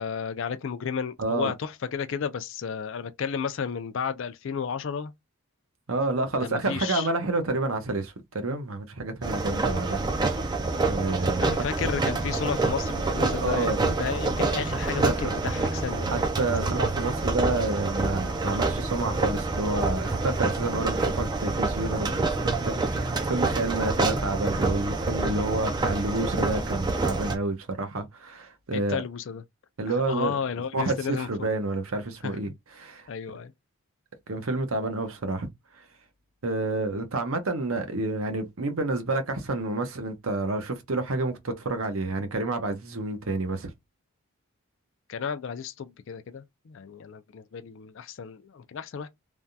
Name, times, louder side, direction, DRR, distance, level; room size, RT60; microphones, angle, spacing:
voice 1, 0.0-5.1 6.4-7.1 11.4-16.3 16.6-16.8 28.7-29.4 29.9-31.5 32.2-32.6 33.1-33.5 45.1-49.1, left 6 dB, 55° left, 0.4 m, -33 dB
voice 2, 1.2-1.5 5.9-10.0 10.5-10.6 10.9-11.7 13.4-13.8 15.0-15.3 16.1-29.0 29.8-30.4 30.7-32.5 32.8-33.1 34.3-35.5 36.4-43.7, right 2 dB, 70° right, 0.8 m, -29 dB
sound 1, 9.2-27.4, right 3 dB, 20° right, 0.4 m, -27 dB
3.3 x 2.3 x 2.6 m
head